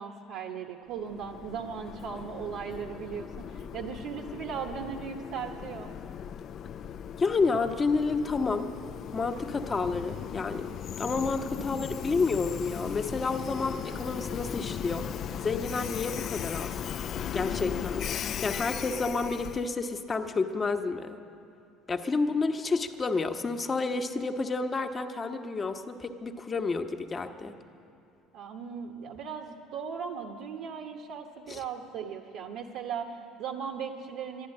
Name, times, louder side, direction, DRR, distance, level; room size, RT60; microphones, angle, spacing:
voice 1, 0.0-5.9 28.3-34.5, right 6 dB, 75° right, 2 dB, 1.0 m, -38 dB
Train, 1.0-19.7, left 8 dB, 50° left, 0.4 m, -37 dB
voice 2, 7.2-8.7 9.1-10.7 11.0-15.1 15.4-16.7 17.3-21.2 21.9-27.5 31.5-31.6, left 4 dB, 30° left, 6 dB, 1.0 m, -30 dB
11.5 x 11.0 x 9.7 m, 2.6 s
supercardioid pair, 85°, 0 cm